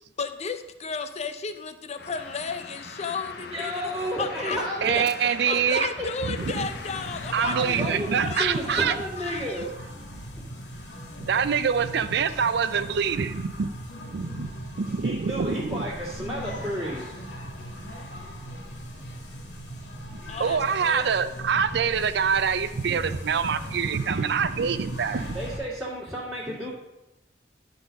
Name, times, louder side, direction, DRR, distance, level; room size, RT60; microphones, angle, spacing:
voice 1, 0.2-4.7 4.9-8.9 9.2-9.7 20.3-21.3, left 5 dB, 40° left, 9 dB, 0.6 m, -34 dB
sound 1, 2.0-7.7, left 4 dB, 65° left, 0.9 m, -42 dB
voice 2, 3.5-5.0 7.4-9.7 15.0-17.1 25.3-26.7, equal, 10° right, -10 dB, 2.3 m, -32 dB
voice 3, 4.8-5.9 6.2-6.7 7.3-8.9 11.2-13.7 14.1-14.5 14.8-15.8 20.1-25.4, right 6 dB, 65° right, 13 dB, 0.5 m, -25 dB
sound 2, 6.3-25.6, equal, 90° left, 2.1 m, -39 dB
11.5 x 4.1 x 5.2 m, 0.95 s
head